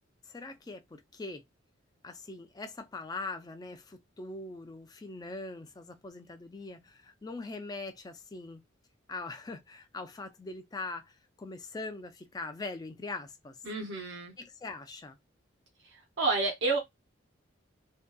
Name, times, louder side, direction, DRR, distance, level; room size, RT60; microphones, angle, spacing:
voice 1, 0.2-1.4 2.0-8.6 9.1-13.6 14.4-15.2, left 3 dB, 20° left, 0.3 m, -42 dB
voice 2, 13.7-14.3 15.8-16.8, right 3 dB, 65° right, 0.6 m, -30 dB
2.7 x 2.2 x 2.2 m
head